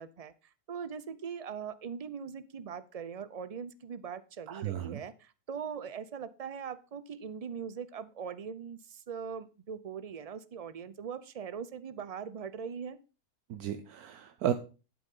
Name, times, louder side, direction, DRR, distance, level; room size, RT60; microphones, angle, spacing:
voice 1, 0.0-13.0, right 7 dB, 55° right, 14 dB, 0.4 m, -41 dB
voice 2, 4.5-5.0 13.5-14.5, right 10 dB, 80° right, 9 dB, 1.2 m, -33 dB
11.5 x 6.1 x 5.4 m, 0.34 s
omnidirectional pair, 1.6 m